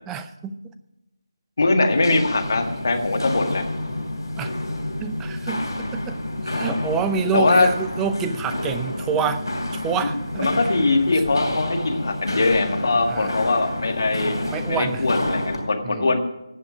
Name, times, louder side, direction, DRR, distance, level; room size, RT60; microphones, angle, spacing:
voice 1, 0.1-0.6 4.4-4.5 5.0-10.5 13.1-13.3 14.4-15.1 15.8-16.2, right 6 dB, 5° right, 11 dB, 0.4 m, -27 dB
voice 2, 1.6-3.6 7.3-7.7 10.0-10.1 10.4-14.4 14.7-16.2, left 3 dB, 45° left, 5 dB, 1.7 m, -21 dB
Walk footsteps, 1.9-15.7, left 1 dB, 60° left, 3.2 m, -29 dB
17.0 x 5.7 x 9.8 m, 0.98 s
figure-of-eight pair, 160°, 2 cm